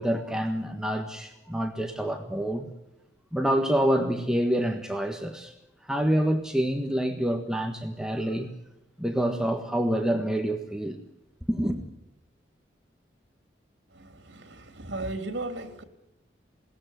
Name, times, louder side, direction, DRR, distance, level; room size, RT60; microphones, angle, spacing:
voice 1, 0.0-2.7 3.3-5.5 5.9-8.5 9.0-11.0 11.5-11.8, equal, 5° right, 1.4 m, -27 dB
voice 2, 13.9-15.8, right 2 dB, 75° right, 3.1 m, -36 dB
21.5 x 18.0 x 9.3 m
head